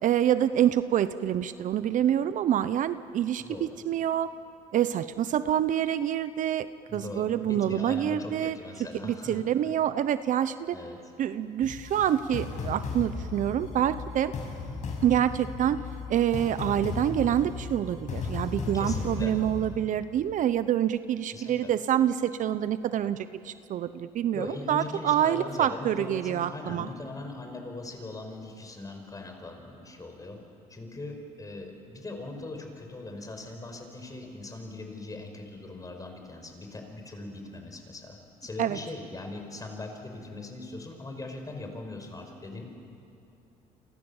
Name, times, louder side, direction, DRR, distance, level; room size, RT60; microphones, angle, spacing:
voice 1, 0.0-4.3 4.7-6.7 6.9-8.6 9.0-10.8 11.2-14.3 15.0-15.8 16.1-26.9 38.6-38.8, right 10 dB, 55° right, 13 dB, 0.9 m, -26 dB
voice 2, 3.4-3.7 6.9-9.4 10.7-11.0 18.7-19.4 21.3-21.7 24.3-30.4 30.7-42.6, left 2 dB, 25° left, 4 dB, 5.5 m, -40 dB
sound 1, 11.6-19.8, left 4 dB, 55° left, 6.0 m, -36 dB
29.5 x 24.5 x 7.3 m, 2.7 s
supercardioid pair, 90°, 15 cm